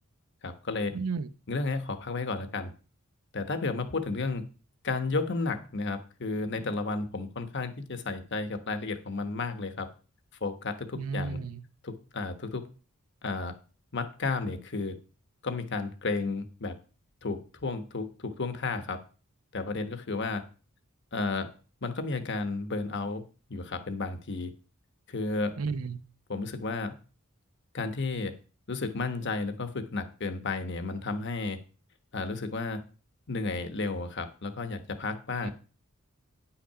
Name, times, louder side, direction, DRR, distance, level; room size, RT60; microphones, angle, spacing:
voice 1, 0.4-1.0 1.5-2.7 3.3-4.4 4.8-9.9 10.4-11.4 11.8-12.6 13.2-13.5 13.9-15.0 15.4-16.7 17.2-19.0 19.5-20.4 21.1-21.5 21.8-23.2 23.5-24.5 25.1-25.6 26.3-26.9 27.7-28.3 28.7-31.6 32.1-32.8 33.3-35.5, left 3 dB, 55° left, 9 dB, 1.1 m, -32 dB
voice 2, 0.9-1.3 11.0-11.6 25.6-26.0 35.4-35.5, right 4 dB, 90° right, 13 dB, 0.7 m, -33 dB
9.8 x 5.8 x 5.7 m, 0.36 s
head